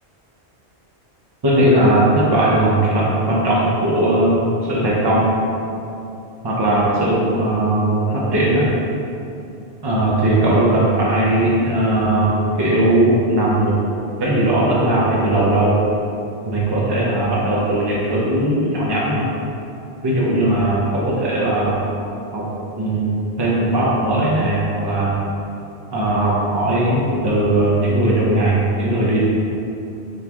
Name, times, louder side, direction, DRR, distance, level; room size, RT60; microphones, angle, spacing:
voice 1, 1.4-5.4 6.4-8.7 9.8-13.8 14.2-15.8 16.5-19.3 20.0-21.9 22.3-22.5 22.8-25.2 25.9-29.2, right 1 dB, 35° right, -7 dB, 0.4 m, -18 dB
3.9 x 3.4 x 2.9 m, 2.7 s
omnidirectional pair, 1.1 m